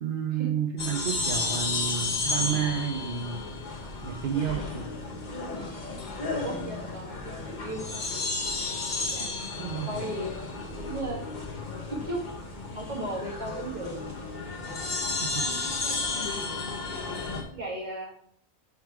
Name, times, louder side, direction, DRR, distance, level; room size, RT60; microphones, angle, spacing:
voice 1, 0.0-3.5 4.0-4.9 9.6-9.9 15.2-15.5, right 8 dB, 55° right, 4 dB, 0.7 m, -31 dB
sound 1, 0.8-17.4, left 3 dB, 40° left, 1.0 m, -33 dB
voice 2, 6.3-8.2 9.1-9.3 9.9-11.3 11.9-12.3 12.7-14.0 16.1-16.3 16.9-17.2 17.5-18.1, right 1 dB, 40° right, -3 dB, 2.0 m, -36 dB
5.8 x 4.5 x 4.6 m, 0.62 s
omnidirectional pair, 1.2 m